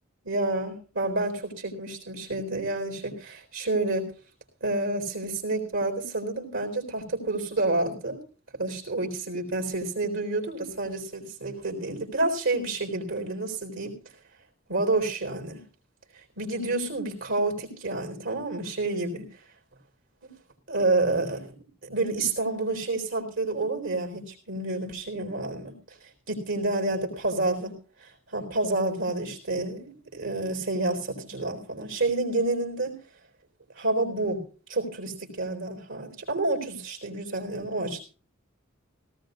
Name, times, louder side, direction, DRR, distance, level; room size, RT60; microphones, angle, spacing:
voice 1, 0.2-4.1 4.6-8.2 8.5-13.9 14.7-15.6 16.4-19.3 20.2-20.3 20.7-21.6 21.8-25.8 26.3-27.7 28.3-32.9 33.8-34.4 34.7-38.0, right 2 dB, 70° right, 5 dB, 4.1 m, -29 dB
18.0 x 16.0 x 2.6 m, 0.35 s
head